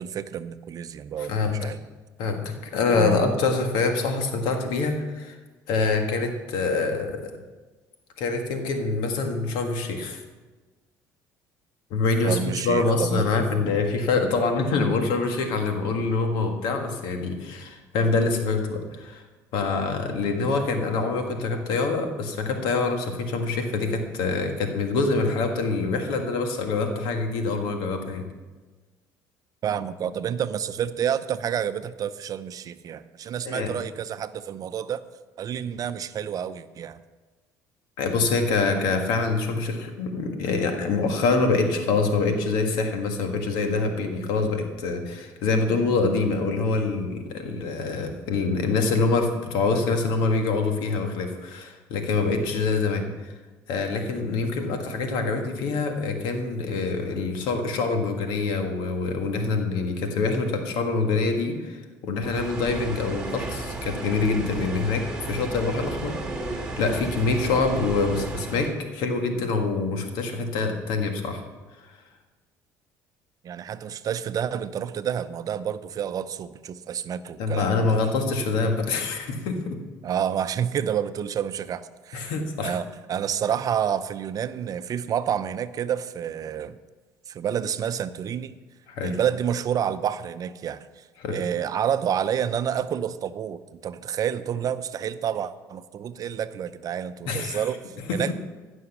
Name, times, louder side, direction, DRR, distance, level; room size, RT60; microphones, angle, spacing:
voice 1, 0.0-1.8 3.0-3.3 12.2-13.2 18.0-18.1 29.6-35.0 35.4-37.0 73.4-78.0 80.0-82.3 82.6-86.8 87.3-88.6 89.0-98.3, right 9 dB, 50° right, 12 dB, 0.6 m, -29 dB
voice 2, 1.2-1.7 2.2-5.3 5.7-7.2 8.2-10.2 11.9-12.4 12.6-19.2 19.5-28.2 33.4-33.7 38.0-53.3 53.7-66.2 66.8-71.4 77.4-79.8 82.1-82.7 88.9-89.2 91.2-91.4 97.3-97.6 98.1-98.3, left 3 dB, 75° left, 5 dB, 1.7 m, -25 dB
sound 1, 62.2-68.7, right 2 dB, 10° right, 2.3 m, -34 dB
15.5 x 6.3 x 6.0 m, 1.3 s
supercardioid pair, 75°, 8 cm